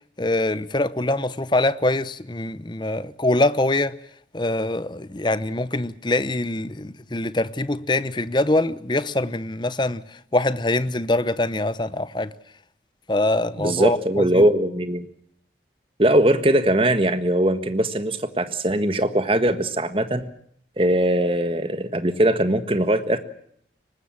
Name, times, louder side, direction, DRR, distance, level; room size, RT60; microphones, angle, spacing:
voice 1, 0.2-3.9 4.3-12.3 13.1-14.5, left 2 dB, 25° left, 0.8 m, -24 dB
voice 2, 13.6-15.1 16.0-20.3 20.8-23.2, right 1 dB, 30° right, 1.6 m, -20 dB
23.5 x 19.5 x 7.4 m
head